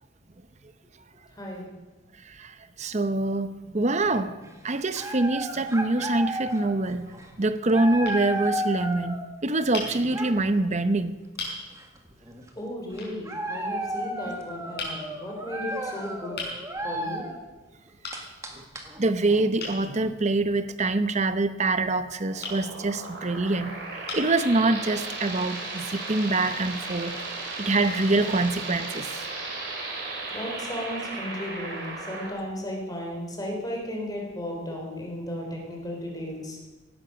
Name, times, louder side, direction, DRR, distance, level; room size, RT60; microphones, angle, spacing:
voice 1, 2.8-3.5 3.7-4.3 4.6-7.1 7.4-11.2 19.0-23.7 24.1-27.1 27.6-29.0, right 2 dB, 35° right, 12 dB, 0.8 m, -25 dB
sound 1, 3.9-4.5 4.9-9.2 9.6-10.5 11.4-11.5 11.7-12.5 12.9-17.4 17.9-20.1, right 1 dB, 15° right, 1.7 m, -34 dB
sound 2, 8.0-8.2 9.7-9.9 10.8-10.9 11.4-11.6 13.0-13.2 14.8-15.0 16.4-16.6 18.0-18.2 19.6-19.8 22.4-22.6 23.4-23.5 24.1-24.4, left 3 dB, 50° left, 5.2 m, -35 dB
voice 2, 12.6-16.4 16.8-17.2 30.3-36.6, left 1 dB, 20° left, 0 dB, 3.4 m, -35 dB
sound 3, 22.3-32.3, right 3 dB, 60° right, 3.9 m, -35 dB
17.0 x 11.5 x 6.3 m, 1.2 s
head